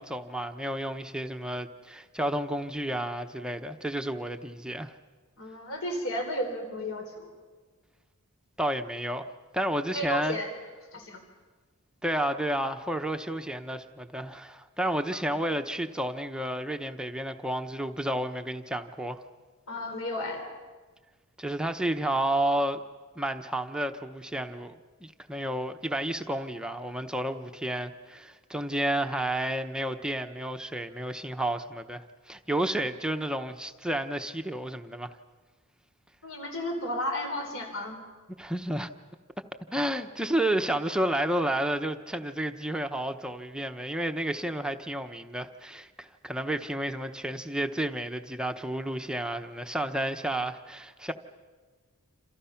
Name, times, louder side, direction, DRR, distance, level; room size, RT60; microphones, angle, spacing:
voice 1, 0.0-4.9 8.6-10.4 12.0-19.2 21.4-22.8 23.2-24.7 25.0-35.2 38.4-38.9 39.7-51.1, right 1 dB, 5° right, 0.8 m, -31 dB
voice 2, 5.4-7.3 9.9-10.5 10.9-11.2 15.1-15.4 19.7-20.5 36.2-38.0, left 1 dB, 60° left, 3.7 m, -33 dB
28.5 x 27.0 x 5.8 m
head